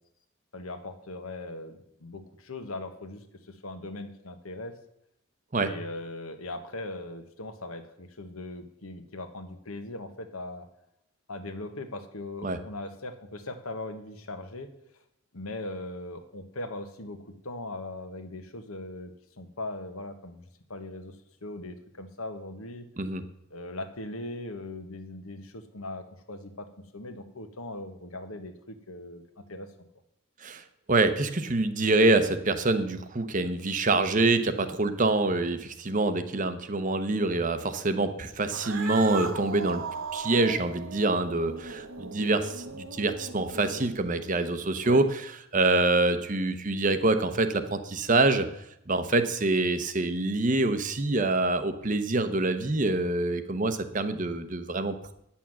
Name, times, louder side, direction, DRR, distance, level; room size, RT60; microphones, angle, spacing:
voice 1, 0.5-4.7 5.6-10.7 11.3-14.7 15.3-20.4 20.7-21.1 21.4-22.9 23.5-26.7 26.9-29.7 44.8-45.0, left 2 dB, 80° left, 8 dB, 1.3 m, -39 dB
voice 2, 30.4-39.8 40.1-48.5 48.9-55.1, right 2 dB, 35° right, 9 dB, 0.8 m, -26 dB
Cat, 38.4-44.1, right 3 dB, 65° right, 1.0 m, -38 dB
9.6 x 7.1 x 7.5 m, 0.79 s
head